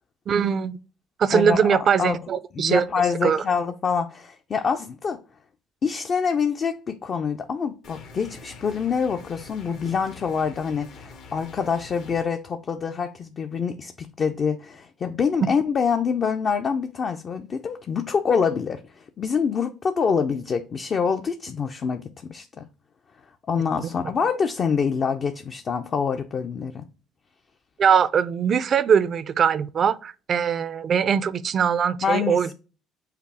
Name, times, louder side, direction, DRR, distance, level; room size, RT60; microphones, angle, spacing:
voice 1, 0.3-0.8 1.2-2.8 3.2-3.4 23.8-23.9 27.8-32.5, right 7 dB, 50° right, 0.4 m, -21 dB
voice 2, 1.3-2.2 2.5-5.2 5.8-22.7 23.5-26.8 32.0-32.5, left 6 dB, 45° left, 0.5 m, -26 dB
sound 1, 7.8-12.2, left 4 dB, 70° left, 1.1 m, -45 dB
5.7 x 2.0 x 4.5 m
supercardioid pair, 85°, 0 cm